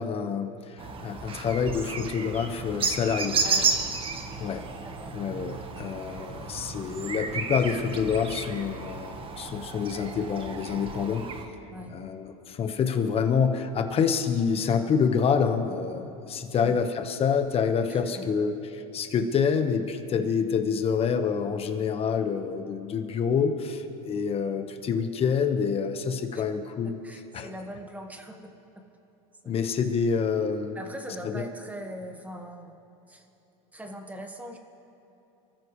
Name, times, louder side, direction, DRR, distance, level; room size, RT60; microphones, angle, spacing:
voice 1, 0.0-3.4 4.4-4.6 5.1-11.3 11.9-27.0 27.3-27.5 29.4-30.8 31.2-31.4, left 6 dB, 30° left, 6 dB, 1.4 m, -27 dB
sound 1, 0.8-11.4, right 5 dB, 30° right, 1.5 m, -32 dB
voice 2, 3.4-3.7 4.8-5.2 11.7-11.9 16.5-16.8 17.9-18.4 26.3-26.4 26.8-28.5 29.4-29.5 30.7-32.8 33.1-33.3 33.7-34.6, equal, 10° right, 4 dB, 1.7 m, -41 dB
28.5 x 14.5 x 3.3 m, 3.0 s
supercardioid pair, 115°, 18 cm